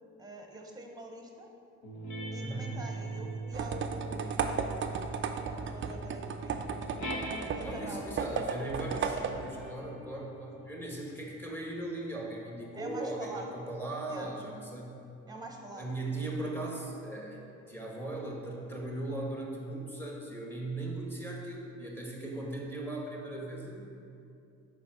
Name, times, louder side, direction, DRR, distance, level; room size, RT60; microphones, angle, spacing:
voice 1, 0.2-1.5 2.3-4.5 5.6-6.8 7.4-8.1 12.8-13.5 14.1-14.3 15.3-15.9, right 2 dB, 15° right, 2 dB, 0.9 m, -45 dB
sound 1, 1.8-8.2 9.0-13.9, right 2 dB, 75° left, 1.4 m, -42 dB
voice 2, 2.4-2.8 7.6-15.0 15.8-23.9, right 2 dB, 5° left, -2 dB, 1.3 m, -38 dB
sound 2, 3.5-9.7, right 6 dB, 40° right, 0.4 m, -35 dB
5.2 x 4.2 x 6.0 m, 2.6 s
cardioid pair, 90°, 30 cm